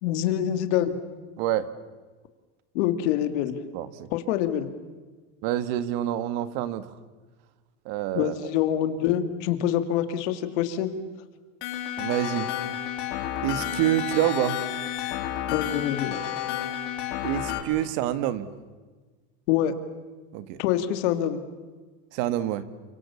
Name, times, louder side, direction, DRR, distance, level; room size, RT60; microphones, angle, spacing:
voice 1, 0.0-1.0 2.7-3.6 4.1-4.7 8.1-10.9 15.5-16.2 19.5-19.7 20.6-21.4, left 11 dB, 80° left, 9 dB, 2.7 m, -25 dB
voice 2, 1.4-1.7 3.7-4.1 5.4-6.9 7.9-8.4 12.0-12.5 13.4-14.6 17.2-18.5 20.3-20.6 22.1-22.6, right 13 dB, 65° right, 13 dB, 1.8 m, -27 dB
sound 1, 11.6-17.6, left 11 dB, 65° left, 4.3 m, -31 dB
29.0 x 25.5 x 7.2 m, 1.3 s
cardioid pair, 165°, 35 cm